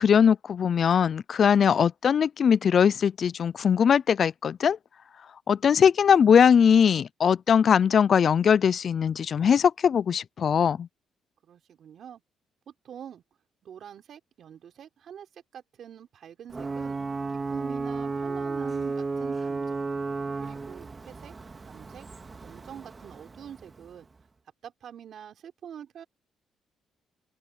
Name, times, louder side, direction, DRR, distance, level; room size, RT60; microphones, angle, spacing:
voice 1, 0.0-4.8 5.5-10.9, left 7 dB, 55° left, 0.4 m, -21 dB
voice 2, 11.4-12.2 12.7-13.2 13.6-17.0 17.3-19.9 20.4-21.3 21.6-22.1 22.4-24.1 24.6-26.0, right 9 dB, 65° right, 3.9 m, -45 dB
Ocean / Boat Water vehicle / Alarm, 16.5-24.1, right 4 dB, 30° right, 1.9 m, -33 dB
open air
cardioid pair, 90°, 0 cm